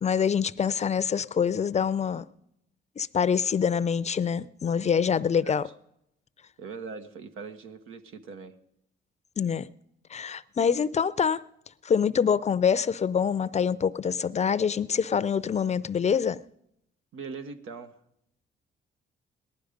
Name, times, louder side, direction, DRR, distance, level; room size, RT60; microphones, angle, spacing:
voice 1, 0.0-2.3 3.0-5.7 9.4-9.7 10.1-11.4 11.8-16.4, left 7 dB, 35° left, 0.5 m, -25 dB
voice 2, 6.6-8.6 17.1-17.9, right 5 dB, 85° right, 1.3 m, -41 dB
18.5 x 11.5 x 5.1 m
cardioid pair, 100°, 20 cm